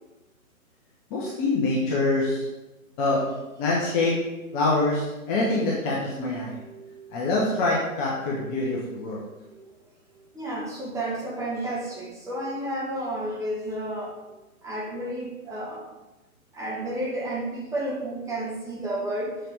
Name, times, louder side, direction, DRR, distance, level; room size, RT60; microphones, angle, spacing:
voice 1, 1.1-2.5 3.0-3.2 3.6-4.1 4.5-6.6 7.1-9.2, left 2 dB, 20° left, -4 dB, 0.8 m, -25 dB
voice 2, 6.5-7.2 9.1-9.7 10.1-15.9 16.5-19.4, right 1 dB, 5° right, -5 dB, 1.1 m, -32 dB
6.6 x 5.8 x 3.3 m, 1.1 s
figure-of-eight pair, 125°, 43 cm